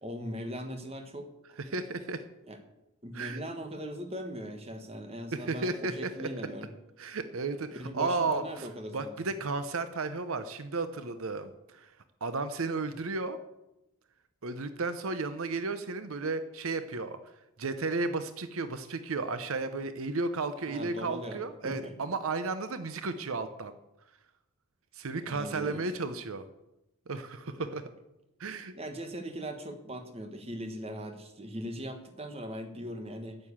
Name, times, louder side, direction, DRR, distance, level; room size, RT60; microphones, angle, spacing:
voice 1, 0.0-1.6 2.5-2.6 3.0-6.7 7.7-9.1 20.7-21.9 25.3-25.9 28.7-33.4, equal, 25° right, 6 dB, 1.3 m, -40 dB
voice 2, 1.7-2.2 3.1-3.4 5.3-6.3 7.0-8.7 8.9-11.9 12.2-13.4 14.4-17.2 17.6-23.7 24.9-26.4 27.1-27.8 28.4-28.7, right 3 dB, 70° right, 11 dB, 0.7 m, -33 dB
9.5 x 7.7 x 8.6 m, 0.92 s
head